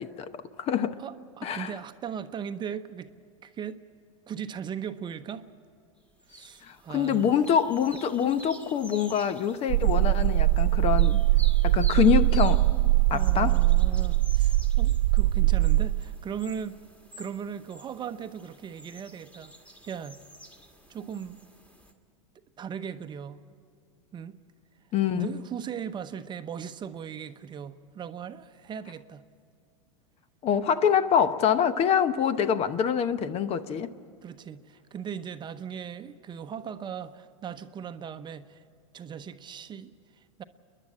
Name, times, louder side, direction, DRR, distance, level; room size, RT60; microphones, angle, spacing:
voice 1, 0.0-1.0 1.4-1.7 6.6-11.2 11.6-12.7 13.1-13.6 24.9-25.4 30.4-33.9, left 8 dB, 40° left, 0.8 m, -25 dB
voice 2, 1.0-3.1 3.4-3.8 4.3-5.5 6.3-7.3 13.1-16.8 17.2-19.5 19.9-20.2 20.9-21.4 22.6-23.4 24.1-24.4 25.1-29.2 34.2-38.6 38.9-40.4, right 8 dB, 25° right, 0.8 m, -38 dB
sound 1, 6.2-21.9, right 1 dB, 10° left, 2.0 m, -50 dB
sound 2, 9.7-16.2, right 17 dB, 70° right, 0.4 m, -22 dB
28.5 x 11.0 x 8.8 m
hypercardioid pair, 100°, 17 cm